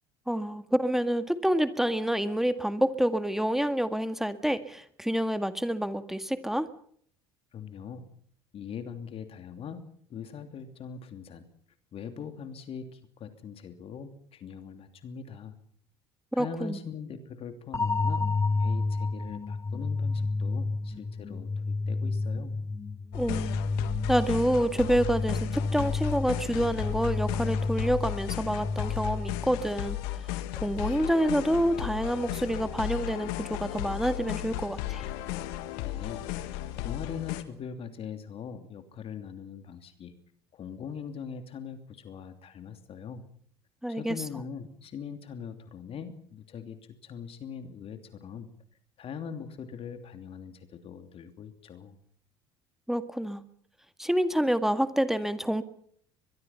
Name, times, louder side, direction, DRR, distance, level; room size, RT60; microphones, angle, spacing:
voice 1, 0.3-6.7 16.3-16.8 23.1-23.6 24.1-30.0 30.6-35.1 43.8-44.2 52.9-53.4 54.0-55.6, equal, 5° right, 11 dB, 1.8 m, -27 dB
voice 2, 7.5-8.1 8.5-9.8 10.1-11.5 11.9-15.5 16.3-18.2 18.6-22.5 35.8-40.1 40.5-43.2 43.9-48.5 49.0-52.0, left 7 dB, 50° left, 8 dB, 2.9 m, -41 dB
sound 1, 17.7-29.7, left 3 dB, 25° left, 1.5 m, -31 dB
sound 2, 23.1-37.4, left 14 dB, 75° left, 1.8 m, -35 dB
23.0 x 22.5 x 5.7 m, 0.62 s
hypercardioid pair, 65°, 13 cm